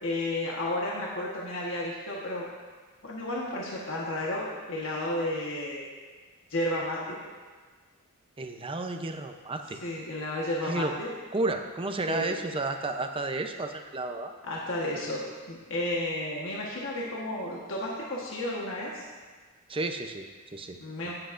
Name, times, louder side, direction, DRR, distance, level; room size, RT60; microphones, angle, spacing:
voice 1, 0.0-2.5 3.0-5.8 6.5-7.2 9.8-11.1 12.0-12.3 14.4-19.1 20.8-21.1, left 1 dB, 65° left, -4 dB, 1.3 m, -32 dB
voice 2, 8.4-9.8 10.7-10.9 11.3-14.3 19.7-20.8 21.0-21.1, right 2 dB, 25° right, 5 dB, 0.7 m, -32 dB
18.0 x 7.8 x 2.6 m, 1.5 s
head